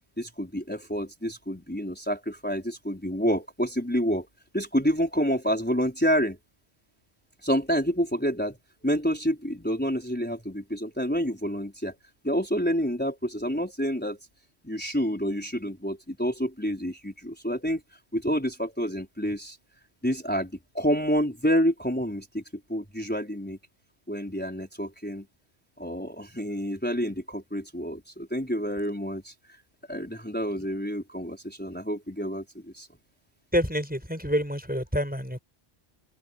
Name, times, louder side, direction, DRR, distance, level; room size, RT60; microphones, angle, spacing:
voice 1, 0.2-4.3 4.5-6.4 7.4-8.6 8.8-11.9 12.2-14.2 14.6-17.8 18.1-19.6 20.0-22.4 22.7-23.6 24.1-25.3 25.8-29.6 29.9-32.9, equal, 10° left, 4.5 m, -28 dB
voice 2, 33.5-35.4, equal, 10° right, 4.9 m, -27 dB
omnidirectional pair, 1.1 m